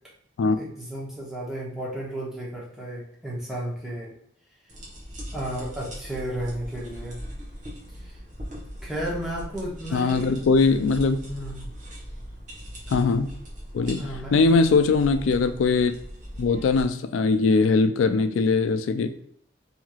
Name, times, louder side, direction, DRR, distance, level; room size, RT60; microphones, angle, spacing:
voice 1, 0.5-4.1 5.3-7.2 8.0-8.1 8.8-10.3 11.3-11.7 14.0-14.3, right 1 dB, 5° right, -5 dB, 0.8 m, -33 dB
sound 1, 4.7-16.8, equal, 40° right, 0.9 m, -39 dB
voice 2, 9.9-11.2 12.9-13.3 13.7-15.9 16.4-19.1, left 4 dB, 80° left, 9 dB, 0.3 m, -21 dB
3.0 x 2.8 x 2.3 m, 0.69 s
head